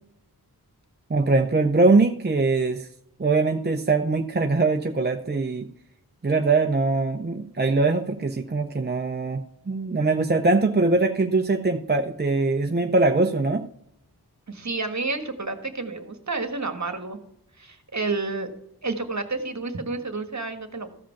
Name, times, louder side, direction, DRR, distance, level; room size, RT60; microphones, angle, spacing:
voice 1, 1.1-2.9 3.2-5.7 6.2-13.7, right 3 dB, 25° right, 5 dB, 0.6 m, -22 dB
voice 2, 14.5-17.2 17.6-18.5 18.8-20.9, right 3 dB, 45° right, 7 dB, 1.5 m, -30 dB
14.5 x 5.1 x 5.8 m, 0.79 s
wide cardioid pair, 55°, 39 cm